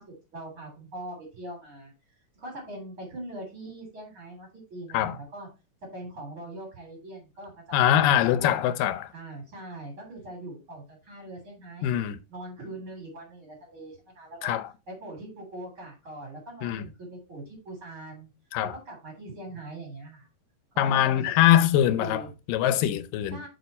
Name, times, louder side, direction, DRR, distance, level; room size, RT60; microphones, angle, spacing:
voice 1, 0.0-1.9 2.4-5.5 5.9-8.6 9.1-12.0 12.3-14.6 14.9-18.3 18.6-20.3 20.7-22.3 23.3-23.5, right 1 dB, 40° right, 3.8 m, -42 dB
voice 2, 7.7-9.1 11.8-12.2 14.4-14.6 16.6-16.8 18.5-18.8 20.8-22.2 22.5-23.4, left 11 dB, 80° left, 2.3 m, -23 dB
7.8 x 4.9 x 4.1 m
omnidirectional pair, 3.9 m